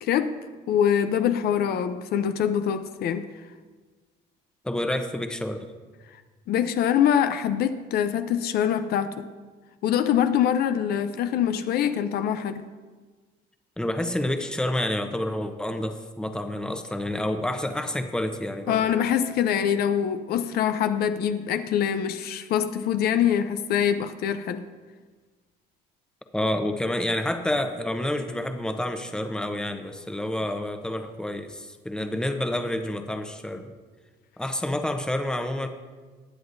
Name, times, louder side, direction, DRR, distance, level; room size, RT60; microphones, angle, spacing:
voice 1, 0.0-0.4 0.7-3.3 6.5-9.3 9.8-12.6 18.7-24.6, left 9 dB, 70° left, 0.6 m, -24 dB
voice 2, 4.6-5.7 13.8-18.9 26.3-33.6 34.4-35.7, left 1 dB, 5° left, 0.8 m, -28 dB
19.0 x 7.9 x 2.6 m
cardioid pair, 110°, 17 cm